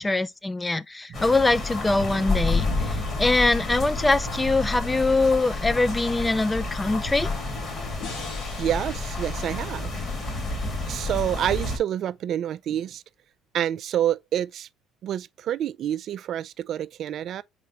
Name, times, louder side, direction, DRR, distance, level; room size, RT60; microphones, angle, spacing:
voice 1, 0.0-7.3, left 2 dB, 15° left, 0.4 m, -23 dB
sound 1, 1.1-11.8, left 2 dB, 40° left, 2.3 m, -29 dB
sound 2, 8.0-11.2, left 5 dB, 70° left, 2.5 m, -43 dB
voice 2, 8.6-10.3 10.8-13.0 13.5-14.7 15.0-17.4, right 10 dB, 60° right, 0.3 m, -28 dB
4.2 x 3.6 x 2.9 m
supercardioid pair, 75°, 0 cm